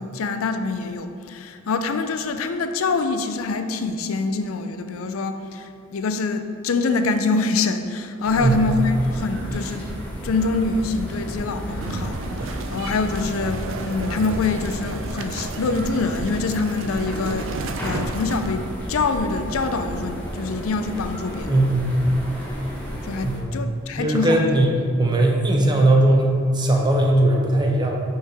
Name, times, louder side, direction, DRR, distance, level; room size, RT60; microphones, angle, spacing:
voice 1, 0.0-9.8 10.2-21.6 23.0-24.7, left 3 dB, 90° left, 8 dB, 0.4 m, -25 dB
sound 1, 8.2-23.4, equal, 10° left, 0.9 m, -33 dB
voice 2, 8.4-8.7 21.5-22.1 23.2-23.6 24.0-24.7 25.0-28.0, right 1 dB, 20° right, 0 dB, 0.7 m, -19 dB
sound 2, 11.8-18.5, right 3 dB, 65° right, 0.4 m, -33 dB
5.6 x 4.5 x 4.7 m, 2.2 s
head